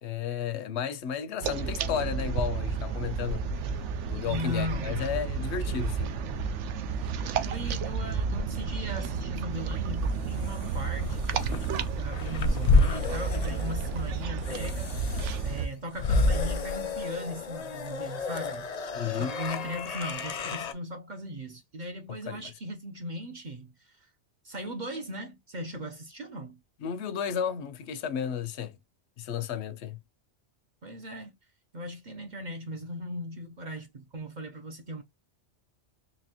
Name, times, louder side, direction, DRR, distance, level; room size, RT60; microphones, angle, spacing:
voice 1, 0.0-6.1 18.9-19.3 22.3-22.5 26.8-28.8 29.2-30.0, left 8 dB, 75° left, 0.9 m, -33 dB
sound 1, 1.4-15.7, right 5 dB, 85° right, 0.9 m, -31 dB
voice 2, 4.3-5.2 6.9-15.2 15.4-24.1 24.4-26.6 30.8-31.4 31.7-35.0, equal, 50° right, 0.7 m, -38 dB
sound 2, 9.7-20.7, left 3 dB, 45° left, 0.6 m, -30 dB
4.1 x 2.8 x 2.8 m
omnidirectional pair, 1.2 m